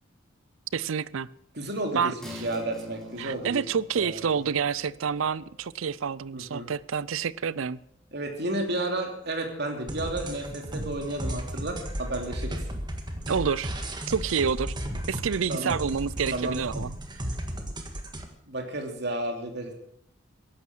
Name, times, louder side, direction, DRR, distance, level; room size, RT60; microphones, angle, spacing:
voice 1, 0.7-1.3 1.9-2.4 3.2-7.8 13.3-13.7 14.1-14.7 15.1-16.9, right 6 dB, 75° right, 21 dB, 0.5 m, -28 dB
voice 2, 1.5-2.1 2.4-3.6 3.9-4.1 6.3-6.7 8.1-12.6 15.5-15.7 16.3-16.6 18.5-19.7, right 1 dB, 55° right, 3 dB, 3.1 m, -32 dB
sound 1, 2.2-9.2 9.6-9.7, left 2 dB, ahead, 2.7 m, -48 dB
sound 2, 9.9-18.3, equal, 20° right, 1.7 m, -34 dB
15.5 x 11.5 x 6.3 m, 0.71 s
head